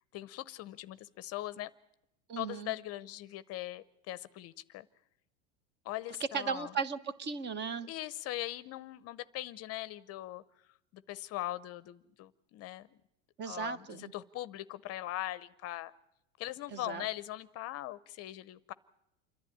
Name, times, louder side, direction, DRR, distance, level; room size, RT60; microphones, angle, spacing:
voice 1, 0.1-1.7 2.4-4.9 5.8-6.7 7.9-10.4 10.9-13.0 13.5-15.9 16.4-18.7, left 15 dB, 35° left, 17 dB, 0.7 m, -40 dB
voice 2, 2.3-2.7 6.3-7.9 13.4-14.1 16.7-17.0, right 6 dB, 25° right, 15 dB, 1.0 m, -36 dB
27.5 x 11.0 x 10.0 m, 0.84 s
supercardioid pair, 130°, 40 cm